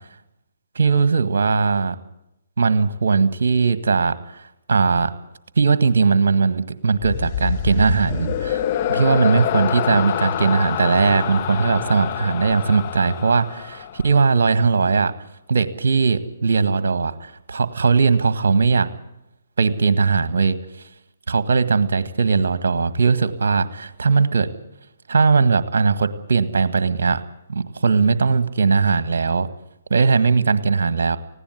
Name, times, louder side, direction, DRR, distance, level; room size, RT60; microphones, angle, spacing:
voice 1, 0.8-2.0 2.6-4.4 4.7-5.1 5.6-8.6 8.9-15.1 15.5-18.9 19.6-20.6 21.3-24.5 25.1-27.2 27.5-29.5 29.9-31.2, right 4 dB, 65° right, 14 dB, 1.7 m, -19 dB
sound 1, 7.0-14.4, left 10 dB, 35° left, 1.3 m, -26 dB
19.0 x 16.5 x 9.5 m, 0.86 s
figure-of-eight pair, 135°, 0 cm